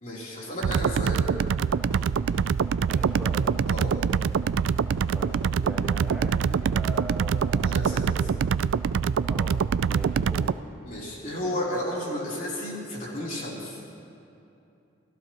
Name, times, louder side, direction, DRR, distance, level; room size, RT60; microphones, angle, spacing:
voice 1, 0.0-1.2 3.7-3.9 7.6-8.0 10.9-13.8, left 1 dB, 40° left, -5 dB, 3.6 m, -32 dB
sound 1, 0.6-10.5, right 6 dB, 75° right, 0.3 m, -25 dB
sound 2, 1.7-7.7, equal, 15° left, 1.8 m, -50 dB
voice 2, 2.9-3.5 5.1-8.0 9.3-9.6 9.9-10.5, right 1 dB, 5° right, -5 dB, 1.5 m, -40 dB
29.5 x 16.0 x 3.1 m, 2.7 s
head